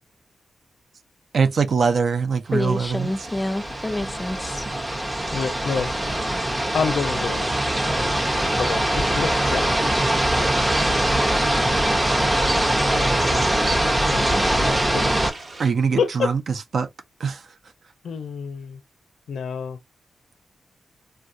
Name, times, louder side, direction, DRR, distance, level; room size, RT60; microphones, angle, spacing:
voice 1, 1.3-3.1 15.6-16.4 16.7-16.9 17.2-17.4, right 5 dB, 65° right, 0.5 m, -22 dB
voice 2, 2.5-4.6, left 1 dB, 15° left, 0.5 m, -27 dB
sound 1, 2.8-15.3, right 1 dB, 20° right, 0.7 m, -22 dB
voice 3, 5.3-5.9 6.7-7.6 7.9-8.2 8.6-9.9 12.9-13.8 14.1-15.3 16.0-16.3 18.0-18.8 19.3-19.8, left 6 dB, 90° left, 0.4 m, -29 dB
sound 2, 7.9-15.7, right 2 dB, 50° right, 1.1 m, -40 dB
3.4 x 2.2 x 2.5 m
cardioid pair, 90°, 0 cm